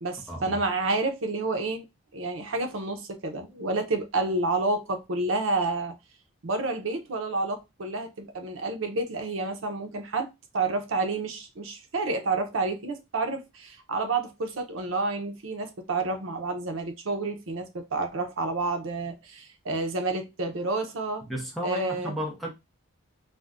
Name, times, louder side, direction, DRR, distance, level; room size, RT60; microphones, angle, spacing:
voice 1, 0.0-1.8 2.1-5.9 6.4-10.3 10.5-21.3 21.6-22.2, right 3 dB, 80° right, 0.7 m, -29 dB
voice 2, 21.3-22.5, equal, ahead, 0.6 m, -33 dB
2.6 x 2.1 x 3.4 m
head